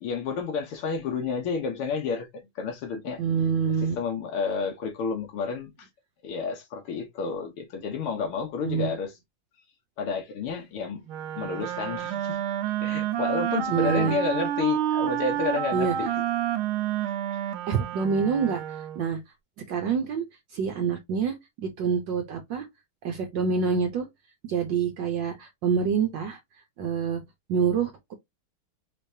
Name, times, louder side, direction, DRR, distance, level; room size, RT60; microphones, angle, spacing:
voice 1, 0.0-3.2 4.0-5.9 6.2-9.1 10.0-11.0 11.4-12.4 12.8-16.1, left 5 dB, 85° left, 1.9 m, -30 dB
voice 2, 3.2-4.0 8.6-8.9 13.7-14.2 15.7-16.0 17.7-19.2 19.7-20.2 20.5-21.4 21.6-22.7 23.0-24.1 24.4-26.4 26.8-27.2 27.5-28.1, right 6 dB, 65° right, 1.3 m, -26 dB
Wind instrument woodwind instrument, 11.1-19.1, right 11 dB, 85° right, 1.5 m, -29 dB
5.1 x 3.4 x 2.7 m
omnidirectional pair, 2.3 m